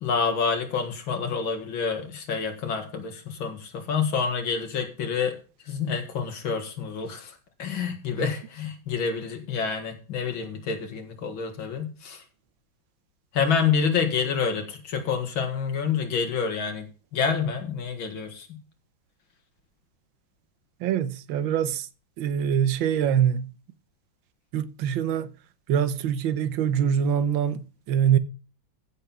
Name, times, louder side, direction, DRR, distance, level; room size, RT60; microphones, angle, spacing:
voice 1, 0.0-5.4 5.7-12.2 13.3-18.6, left 6 dB, 85° left, 2.6 m, -28 dB
voice 2, 20.8-21.9 22.2-23.5 24.5-25.3 25.7-28.2, right 9 dB, 85° right, 1.6 m, -24 dB
15.0 x 5.6 x 6.0 m
omnidirectional pair, 2.1 m